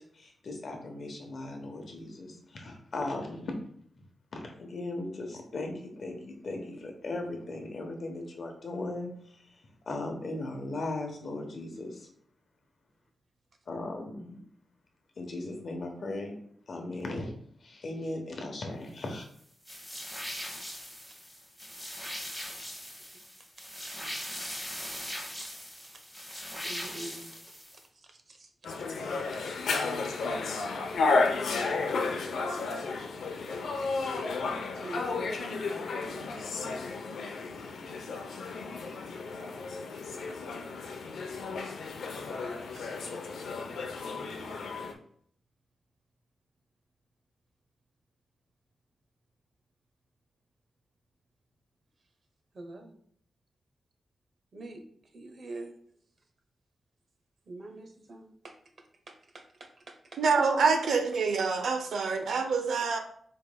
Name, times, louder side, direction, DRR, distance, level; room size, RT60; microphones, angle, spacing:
voice 1, 0.0-3.6 4.3-12.1 13.7-14.4 15.2-16.4 16.7-17.3 17.6-19.3, left 2 dB, 45° left, 3 dB, 0.9 m, -38 dB
sound 1, 19.7-27.8, equal, ahead, 1.1 m, -40 dB
voice 2, 26.6-28.5 28.9-29.5 30.0-30.1 31.5-31.6 34.8-36.5 42.7-42.9 52.5-53.0 54.5-54.8 55.1-55.7 57.5-58.5 59.1-60.2, right 2 dB, 40° right, 5 dB, 0.7 m, -46 dB
sound 2, 28.6-44.9, left 3 dB, 90° left, 0.6 m, -33 dB
voice 3, 60.2-63.0, right 4 dB, 75° right, 6 dB, 0.6 m, -26 dB
5.1 x 4.7 x 2.2 m, 0.62 s
wide cardioid pair, 170°, 0 cm